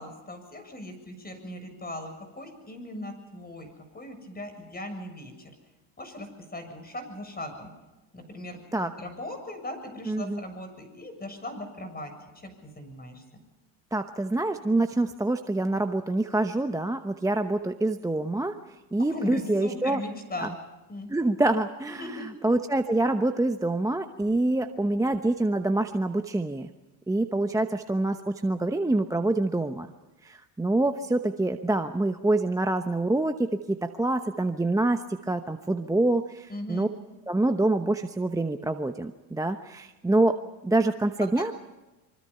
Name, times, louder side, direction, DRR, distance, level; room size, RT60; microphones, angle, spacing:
voice 1, 0.0-3.7 3.9-5.5 6.0-7.7 8.1-8.6 9.0-12.1 12.4-13.2 19.0-20.5 20.9-21.1 22.0-22.3 36.5-36.9 41.4-41.5, left 1 dB, 20° left, 7 dB, 7.3 m, -38 dB
voice 2, 10.1-10.4 13.9-18.5 18.9-20.0 20.4-20.5 21.1-26.7 27.1-29.9 30.2-36.9 37.3-40.4 40.6-41.5, right 2 dB, 5° right, 7 dB, 0.9 m, -26 dB
26.0 x 24.5 x 5.7 m, 1.1 s
supercardioid pair, 95°, 49 cm